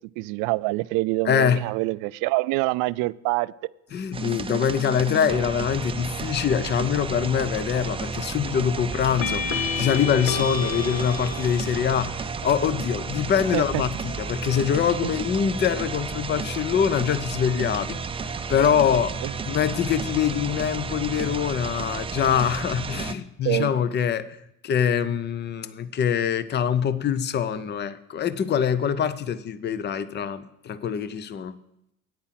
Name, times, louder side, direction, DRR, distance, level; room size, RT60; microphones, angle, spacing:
voice 1, 0.2-3.5 13.5-13.6 15.0-15.1 19.2-19.3 23.4-23.7, right 22 dB, 60° right, 0.4 m, -25 dB
voice 2, 1.2-1.7 3.9-12.2 12.4-18.0 18.2-19.1 19.5-24.4 24.6-31.6, left 8 dB, 30° left, 0.6 m, -24 dB
sound 1, 4.1-23.1, right 4 dB, 15° right, 0.6 m, -32 dB
sound 2, 7.5-8.0 9.2-12.0, left 5 dB, 60° left, 1.6 m, -31 dB
9.1 x 8.6 x 5.8 m
supercardioid pair, 90°, 37 cm